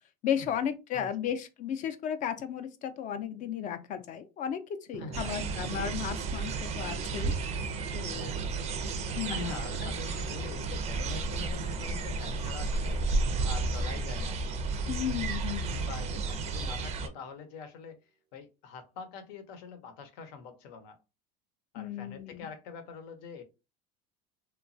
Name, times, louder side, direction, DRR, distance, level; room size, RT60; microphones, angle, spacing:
voice 1, 0.2-7.3 7.9-8.4 9.1-9.5 9.8-9.9 14.9-15.9 21.8-22.5, left 9 dB, 35° left, 0.4 m, -34 dB
voice 2, 0.9-1.3 5.0-5.5 8.1-8.6 9.3-13.2 13.5-14.6 15.7-18.0 18.3-21.0 21.7-23.4, left 5 dB, 80° left, 0.7 m, -44 dB
Drum, 4.9-17.3, right 8 dB, 85° right, 0.5 m, -45 dB
sound 1, 5.1-17.1, right 3 dB, 30° right, 0.4 m, -33 dB
3.0 x 2.2 x 2.6 m
cardioid pair, 135°, 21 cm